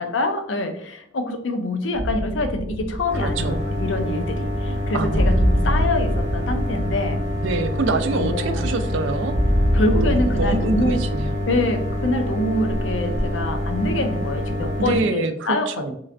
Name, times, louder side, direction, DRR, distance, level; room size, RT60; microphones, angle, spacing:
voice 1, 0.0-7.2 8.1-8.6 9.7-11.0 11.5-16.0, left 2 dB, 75° left, 6 dB, 0.5 m, -25 dB
sound 1, 1.9-11.4, equal, 10° right, 0.9 m, -25 dB
sound 2, 3.1-15.0, left 1 dB, 25° right, 1.4 m, -26 dB
voice 2, 3.1-3.6 4.7-5.7 7.4-9.3 10.0-11.4 14.8-15.9, right 3 dB, 75° right, 8 dB, 0.4 m, -26 dB
3.2 x 3.1 x 2.5 m, 0.69 s
head